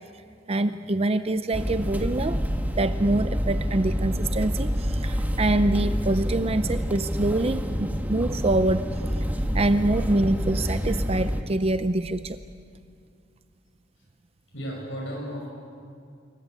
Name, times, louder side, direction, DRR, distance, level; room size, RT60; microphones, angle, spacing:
voice 1, 0.5-2.4 2.8-8.9 9.5-12.4, right 2 dB, 30° right, 11 dB, 0.6 m, -25 dB
sound 1, 1.5-11.4, equal, 10° right, 1.6 m, -27 dB
voice 2, 14.5-15.5, equal, 80° left, -1 dB, 7.3 m, -34 dB
26.5 x 24.0 x 8.3 m, 2.3 s
head